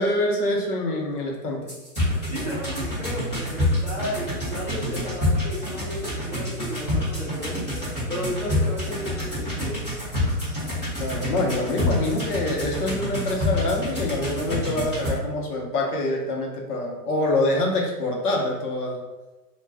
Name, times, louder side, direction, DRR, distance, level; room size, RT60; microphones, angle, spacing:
voice 1, 0.0-1.7 11.0-19.0, left 1 dB, 70° left, 0 dB, 0.9 m, -25 dB
sound 1, 1.7-15.1, left 1 dB, 15° left, 0.9 m, -27 dB
voice 2, 2.3-7.8 8.1-9.9, equal, 25° right, -10 dB, 0.5 m, -33 dB
2.4 x 2.2 x 3.3 m, 1.2 s
hypercardioid pair, 175°, 46 cm